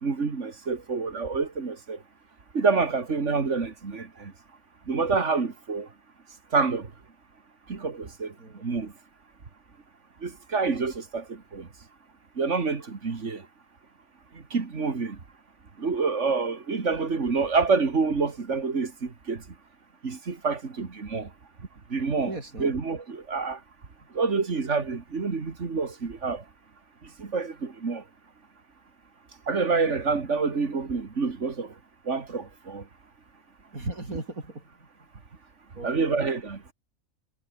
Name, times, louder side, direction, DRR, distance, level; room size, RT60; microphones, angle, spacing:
voice 1, 0.0-2.0 2.5-4.3 4.9-5.9 6.5-6.9 7.7-8.3 8.6-8.9 10.2-11.7 12.4-13.5 14.3-15.2 15.8-19.4 20.0-21.3 21.9-23.6 24.1-26.4 27.2-28.0 29.5-31.7 32.1-32.8 35.8-36.7, right 4 dB, 60° right, 2.5 m, -27 dB
voice 2, 22.2-22.8 33.7-34.9 35.8-36.2, right 2 dB, 90° right, 6.1 m, -37 dB
omnidirectional pair, 1.4 m